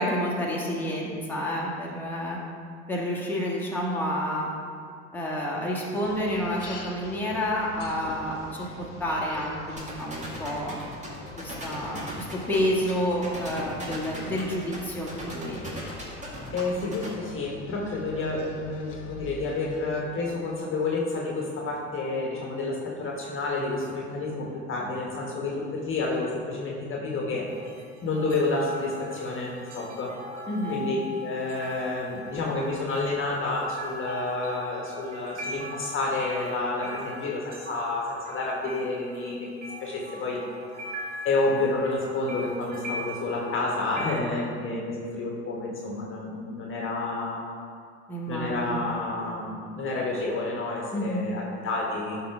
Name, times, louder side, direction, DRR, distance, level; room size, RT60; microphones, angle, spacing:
voice 1, 0.0-2.4 2.9-4.5 5.1-10.8 11.4-15.6 30.5-30.8 48.1-48.9 50.9-51.3, equal, 5° left, -4 dB, 1.9 m, -29 dB
sound 1, 6.0-20.0, left 4 dB, 85° left, 0.9 m, -44 dB
sound 2, 9.8-17.1, right 1 dB, 20° right, 2.2 m, -38 dB
voice 2, 16.5-27.5 28.0-30.1 30.7-40.4 41.2-47.4 48.3-52.2, left 3 dB, 35° left, -3 dB, 1.5 m, -29 dB
sound 3, 27.5-44.2, equal, 85° right, 1.2 m, -40 dB
11.5 x 3.9 x 4.7 m, 2.2 s
hypercardioid pair, 70°, 35 cm